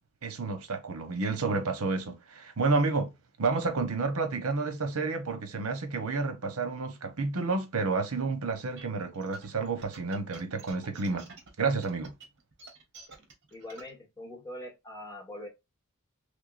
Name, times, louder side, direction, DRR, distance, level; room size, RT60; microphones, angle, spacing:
voice 1, 0.2-3.1 3.4-11.3 11.6-12.1, right 3 dB, 75° right, 1.0 m, -30 dB
sound 1, 8.5-13.9, right 3 dB, 55° right, 1.4 m, -49 dB
voice 2, 13.5-15.5, left 1 dB, 15° left, 1.6 m, -42 dB
3.6 x 3.4 x 2.5 m
head